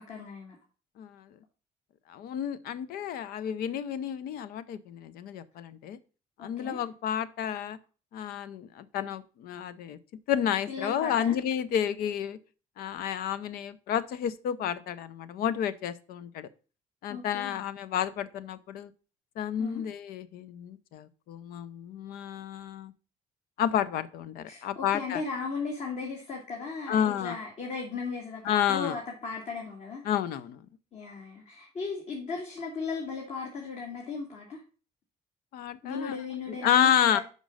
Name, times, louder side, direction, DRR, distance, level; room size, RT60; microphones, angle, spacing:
voice 1, 0.1-0.6 6.4-6.8 10.7-11.3 17.1-17.6 19.6-19.8 24.5-30.0 30.9-34.6 35.8-37.2, left 4 dB, 50° left, -1 dB, 2.2 m, -36 dB
voice 2, 1.0-1.3 2.1-6.0 6.4-7.8 8.1-10.0 10.3-12.4 12.8-16.5 17.0-18.9 19.4-22.9 23.6-25.2 26.9-27.4 28.4-29.0 30.0-30.7 35.5-36.2 36.5-37.2, left 9 dB, 80° left, 15 dB, 0.6 m, -30 dB
5.3 x 5.2 x 6.2 m, 0.36 s
cardioid pair, 95°, 15 cm